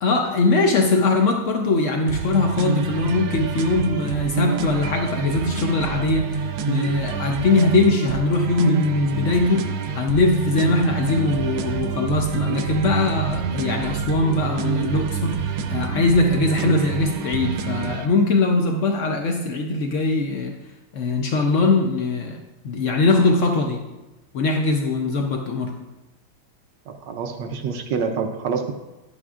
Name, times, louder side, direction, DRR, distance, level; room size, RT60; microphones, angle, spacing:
voice 1, 0.0-20.6 20.9-23.8 24.3-25.7, left 3 dB, 85° left, 3 dB, 0.6 m, -21 dB
sound 1, 2.1-18.1, right 6 dB, 85° right, 1.5 m, -27 dB
voice 2, 26.9-28.7, right 5 dB, 70° right, 6 dB, 1.2 m, -27 dB
11.0 x 8.5 x 2.4 m, 1.1 s
omnidirectional pair, 2.2 m